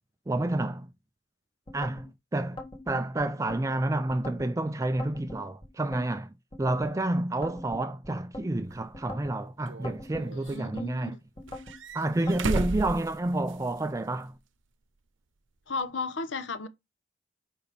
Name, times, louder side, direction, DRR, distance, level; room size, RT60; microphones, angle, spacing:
voice 1, 0.3-0.9 1.7-6.3 6.6-11.2 11.9-14.3, right 2 dB, 15° right, 0.3 m, -29 dB
sound 1, 1.7-2.1 2.6-3.6 4.1-4.5 5.0-6.1 6.5-6.9 7.4-8.5 8.9-9.4 9.8-10.9 11.4-11.8 12.3-12.7, left 2 dB, 30° left, 1.5 m, -42 dB
sound 2, 8.7-8.8 9.7-10.6 11.5-13.8 14.1-14.2 15.8-15.9, right 3 dB, 90° right, 0.8 m, -34 dB
voice 2, 10.3-11.2 15.7-16.7, left 3 dB, 80° left, 1.0 m, -34 dB
7.0 x 5.3 x 3.4 m
head